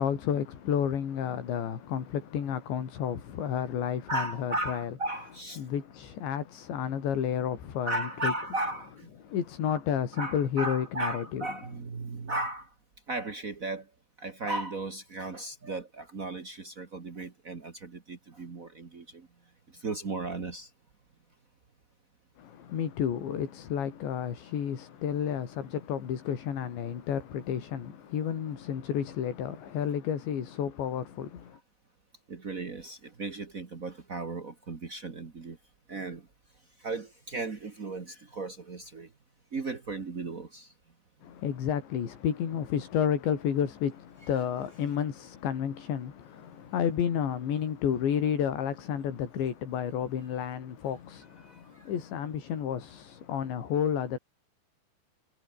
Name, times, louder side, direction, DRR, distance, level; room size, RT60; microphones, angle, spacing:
voice 1, 0.0-4.9 5.6-8.3 9.2-11.5 22.4-31.6 41.2-54.2, left 8 dB, 80° left, 5.7 m, -31 dB
voice 2, 4.1-5.6 7.8-9.1 10.2-12.7 13.1-13.9 14.2-19.3 19.7-20.7 32.3-35.6 35.9-36.3 36.8-39.1 39.5-40.7 51.4-51.9, right 2 dB, 55° right, 0.8 m, -36 dB
omnidirectional pair, 5.1 m